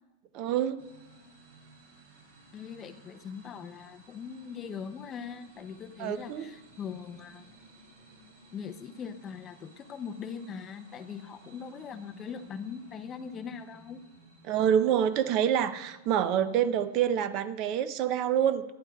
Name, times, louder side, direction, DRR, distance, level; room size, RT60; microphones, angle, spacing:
voice 1, 0.3-0.8 6.0-6.5 14.4-18.6, right 9 dB, 35° right, 14 dB, 0.5 m, -27 dB
sound 1, 0.8-17.1, right 3 dB, 75° right, 4.0 m, -57 dB
voice 2, 2.5-7.4 8.5-14.0, left 7 dB, 20° left, 9 dB, 0.5 m, -41 dB
18.0 x 11.0 x 2.3 m, 1.0 s
supercardioid pair, 160°, 0 cm